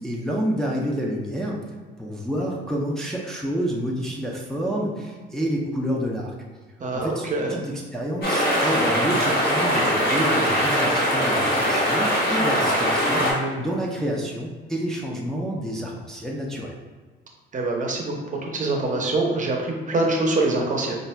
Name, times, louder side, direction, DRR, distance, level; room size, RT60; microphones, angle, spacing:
voice 1, 0.0-1.6 2.0-6.3 6.9-13.3 13.6-16.8, equal, 5° left, -3 dB, 0.5 m, -28 dB
voice 2, 6.8-7.6 13.2-13.7 17.5-18.1 18.4-21.0, right 2 dB, 40° right, 0 dB, 0.7 m, -24 dB
sound 1, 8.2-13.3, equal, 50° left, 1.2 m, -21 dB
5.4 x 2.4 x 2.2 m, 1.4 s
cardioid pair, 90°, 20 cm